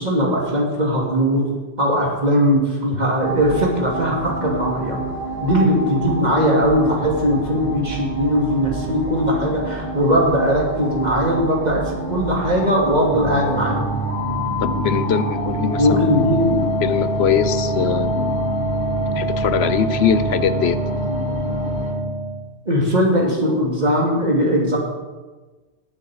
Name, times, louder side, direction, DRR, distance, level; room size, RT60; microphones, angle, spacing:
voice 1, 0.0-1.5 1.8-5.0 5.4-11.8 12.1-13.8 15.8-16.7 21.0-21.2 22.7-24.8, equal, 40° right, -2 dB, 2.7 m, -19 dB
sound 1, 3.2-21.9, right 1 dB, 20° left, 4.8 m, -30 dB
sound 2, 13.1-22.4, right 1 dB, 60° right, 4.6 m, -24 dB
voice 2, 14.6-16.3 16.8-18.4 19.2-20.8, left 8 dB, 70° left, 12 dB, 1.0 m, -22 dB
19.0 x 7.0 x 5.0 m, 1.3 s
omnidirectional pair, 1.1 m